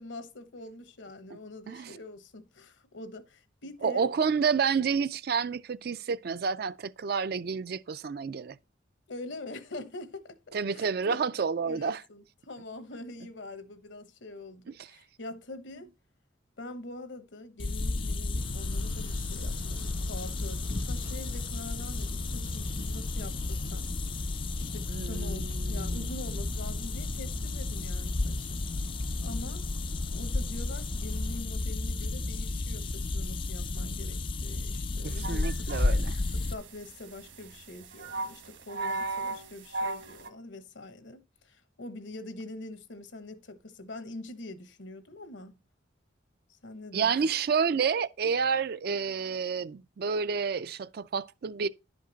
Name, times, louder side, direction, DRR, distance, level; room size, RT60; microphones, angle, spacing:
voice 1, 0.0-4.1 9.1-11.3 11.7-15.9 16.6-23.9 24.6-28.7 29.2-29.6 30.1-35.7 36.3-45.5 46.5-47.2, left 2 dB, 70° left, 1.1 m, -44 dB
voice 2, 3.8-8.6 10.5-12.0 24.9-26.4 35.0-36.2 46.9-51.7, right 5 dB, 50° right, 0.4 m, -29 dB
sound 1, 17.6-36.5, left 2 dB, 25° left, 0.4 m, -32 dB
sound 2, 18.3-31.4, left 1 dB, 85° right, 1.2 m, -53 dB
sound 3, 35.2-40.3, right 2 dB, 70° right, 1.6 m, -37 dB
11.0 x 5.2 x 3.9 m
head